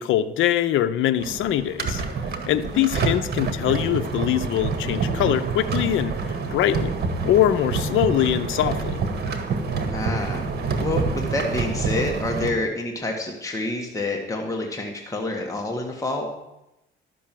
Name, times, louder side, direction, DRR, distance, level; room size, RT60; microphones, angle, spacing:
voice 1, 0.0-2.0 2.5-6.9 7.2-9.0, left 11 dB, 80° left, 10 dB, 0.6 m, -23 dB
sound 1, 1.2-12.5, right 4 dB, 55° right, 1.6 m, -27 dB
voice 2, 9.9-10.4 10.8-16.3, left 2 dB, 15° left, 1 dB, 1.6 m, -28 dB
12.0 x 6.2 x 7.5 m, 0.91 s
cardioid pair, 90°, 20 cm